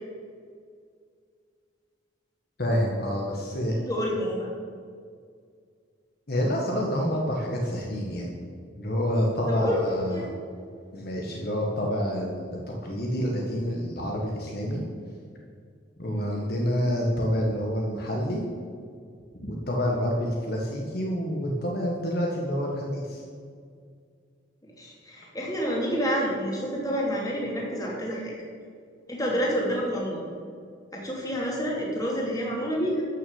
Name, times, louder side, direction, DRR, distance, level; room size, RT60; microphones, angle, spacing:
voice 1, 2.6-3.7 6.3-8.3 8.8-10.3 10.9-14.8 16.0-18.4 19.4-23.2, equal, 55° left, -1 dB, 1.6 m, -28 dB
voice 2, 3.9-4.5 9.5-9.8 10.1-10.2 16.1-16.4 24.6-28.3 29.1-30.3 30.9-33.1, equal, 20° left, -3 dB, 2.8 m, -28 dB
13.5 x 6.4 x 7.1 m, 2.2 s
head